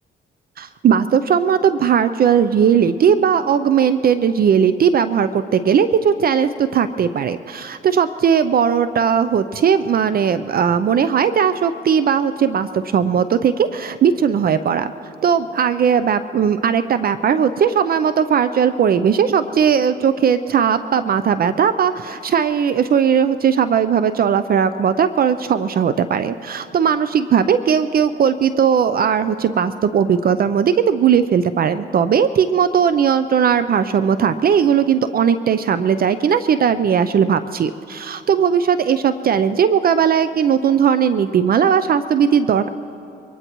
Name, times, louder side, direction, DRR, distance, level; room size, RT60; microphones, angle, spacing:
voice 1, 0.6-14.9 15.2-42.7, right 7 dB, 50° right, 12 dB, 0.5 m, -17 dB
23.5 x 19.0 x 3.0 m, 2.7 s
cardioid pair, 90°, 20 cm